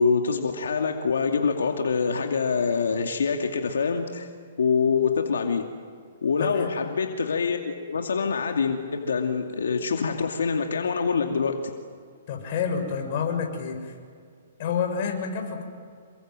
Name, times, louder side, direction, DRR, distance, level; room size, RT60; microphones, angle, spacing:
voice 1, 0.0-4.3 4.6-5.6 6.2-11.6, left 5 dB, 90° left, 3 dB, 2.4 m, -25 dB
voice 2, 12.3-13.9 14.6-15.6, left 6 dB, 45° left, 3 dB, 6.6 m, -28 dB
28.5 x 23.5 x 7.7 m, 2.1 s
hypercardioid pair, 150°, 0 cm